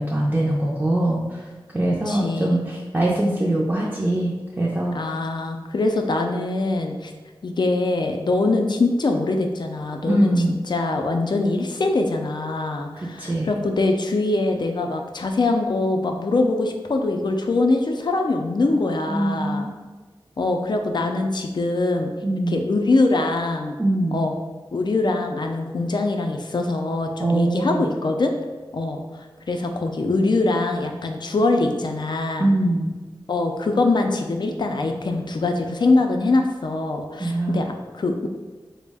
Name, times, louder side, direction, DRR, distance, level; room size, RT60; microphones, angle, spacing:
voice 1, 0.0-1.4 1.7-5.0 10.0-10.5 13.0-13.5 19.1-19.7 22.2-22.6 23.8-24.2 27.2-27.9 32.4-32.9 37.2-37.6, right 1 dB, 20° right, -4 dB, 0.5 m, -22 dB
voice 2, 2.1-2.6 4.9-7.1 7.4-10.3 10.7-19.7 20.4-22.1 22.5-23.8 24.1-24.4 24.7-28.3 28.7-32.5 33.3-38.3, left 2 dB, 55° left, 4 dB, 0.4 m, -23 dB
4.0 x 2.1 x 3.4 m, 1.3 s
wide cardioid pair, 80°, 9 cm